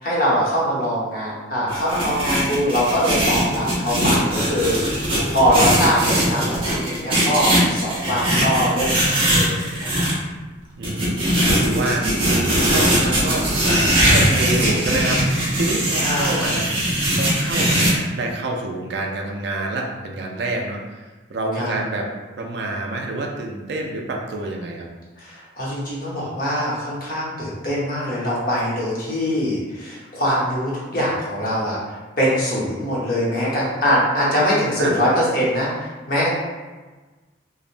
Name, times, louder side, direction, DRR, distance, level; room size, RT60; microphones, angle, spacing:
voice 1, 0.0-10.0 11.4-11.8 16.0-16.6 21.6-21.7 25.2-36.3, equal, 50° left, -7 dB, 0.8 m, -23 dB
sound 1, 1.7-10.1 10.8-17.9, right 1 dB, 30° right, 0.7 m, -20 dB
voice 2, 10.8-21.0 21.3-22.1 22.4-24.9 34.8-35.0, right 2 dB, 60° right, 0 dB, 0.4 m, -27 dB
3.1 x 2.0 x 2.4 m, 1.3 s
head